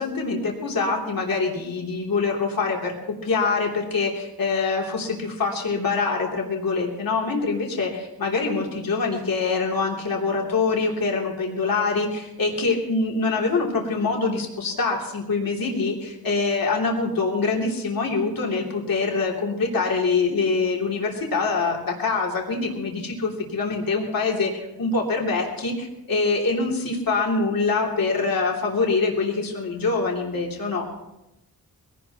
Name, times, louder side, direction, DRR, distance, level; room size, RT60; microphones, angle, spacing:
voice 1, 0.0-30.9, left 4 dB, 70° left, -2 dB, 3.1 m, -24 dB
22.5 x 17.5 x 3.0 m, 0.92 s
wide cardioid pair, 115°, 36 cm